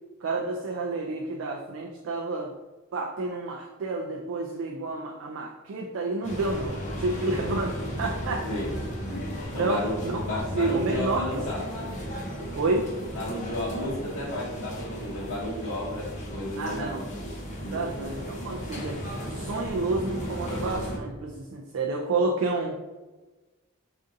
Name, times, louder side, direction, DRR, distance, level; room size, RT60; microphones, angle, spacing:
voice 1, 0.2-2.5 2.9-8.5 9.6-11.2 11.6-11.7 12.6-12.9 16.6-17.0 17.7-19.0 19.3-22.7, right 3 dB, 65° right, 0 dB, 0.3 m, -30 dB
sound 1, 6.2-21.0, equal, 35° left, 0.6 m, -35 dB
voice 2, 9.0-9.9 10.2-11.7 13.1-17.3 17.6-17.9, left 1 dB, 65° left, -9 dB, 0.8 m, -33 dB
2.6 x 2.5 x 3.6 m, 1.2 s
head